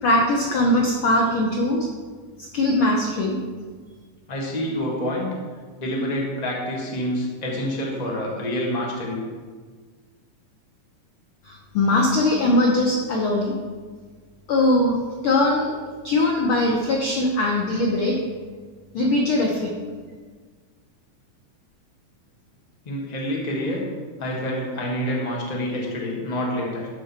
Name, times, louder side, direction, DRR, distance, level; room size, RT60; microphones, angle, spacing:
voice 1, 0.0-1.9 2.4-3.4 11.4-13.5 14.5-15.0 15.2-15.8 16.0-18.2 18.9-19.7, left 1 dB, 80° left, 0 dB, 1.2 m, -21 dB
voice 2, 4.3-5.4 5.8-9.2 22.8-23.8 24.2-26.9, equal, 25° left, -2 dB, 0.8 m, -27 dB
12.5 x 5.2 x 4.2 m, 1.5 s
omnidirectional pair, 3.5 m